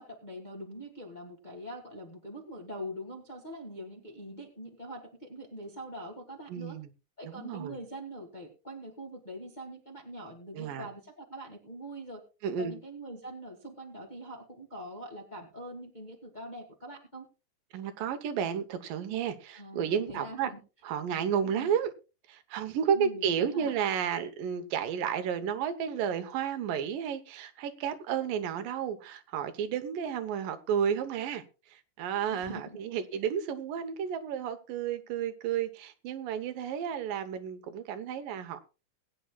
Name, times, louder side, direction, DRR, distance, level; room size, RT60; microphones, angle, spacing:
voice 1, 0.0-6.8 7.2-12.2 12.6-17.3 19.5-20.6 21.4-21.7 22.9-23.8 32.3-32.8, equal, 25° left, 0.9 m, -43 dB
voice 2, 6.5-6.9 7.2-7.8 10.5-10.9 12.4-12.8 17.7-20.5 20.8-21.9 22.3-31.4 31.7-38.6, right 8 dB, 90° right, 2.7 m, -32 dB
21.0 x 9.3 x 2.3 m
omnidirectional pair, 3.8 m